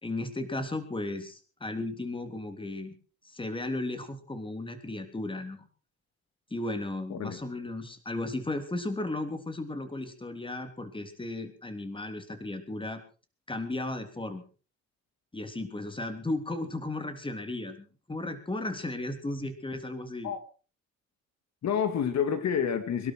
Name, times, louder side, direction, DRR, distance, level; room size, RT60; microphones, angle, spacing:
voice 1, 0.0-2.9 3.2-5.6 6.5-13.0 13.5-14.4 15.3-17.8 18.1-20.3, left 2 dB, 15° left, 8 dB, 3.3 m, -35 dB
voice 2, 21.6-23.1, left 7 dB, 65° left, 9 dB, 2.5 m, -28 dB
22.5 x 12.5 x 4.7 m, 0.37 s
cardioid pair, 90°, 30 cm